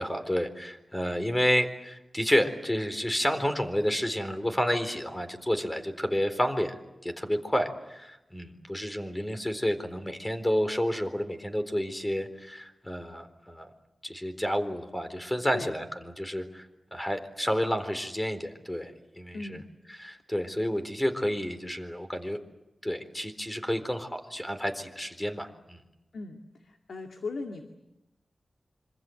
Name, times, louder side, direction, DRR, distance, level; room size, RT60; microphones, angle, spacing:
voice 1, 0.0-6.7 7.0-13.7 14.0-16.7 16.9-19.4 20.0-22.4 22.8-25.8, equal, 15° left, 8 dB, 4.1 m, -30 dB
voice 2, 19.3-19.7 26.1-27.6, left 3 dB, 90° left, 4 dB, 2.2 m, -38 dB
26.5 x 26.0 x 8.0 m, 0.95 s
cardioid pair, 60°, 0 cm